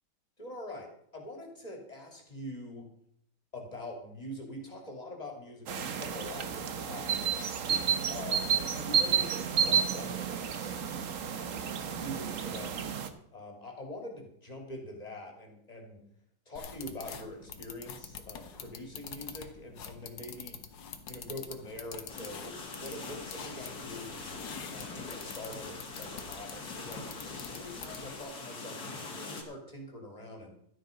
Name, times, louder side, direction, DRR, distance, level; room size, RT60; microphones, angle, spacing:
voice 1, 0.4-2.9 3.5-7.5 8.0-10.7 11.8-12.9 13.3-16.0 16.5-20.6 21.1-24.2 24.7-30.5, left 1 dB, 20° left, 1 dB, 2.9 m, -44 dB
sound 1, 5.7-13.1, right 7 dB, 50° right, 1.2 m, -31 dB
sound 2, 16.6-28.2, left 7 dB, 85° left, 1.8 m, -46 dB
sound 3, 22.1-29.4, left 3 dB, 60° left, 2.5 m, -43 dB
13.0 x 9.7 x 5.3 m, 0.72 s
omnidirectional pair, 1.9 m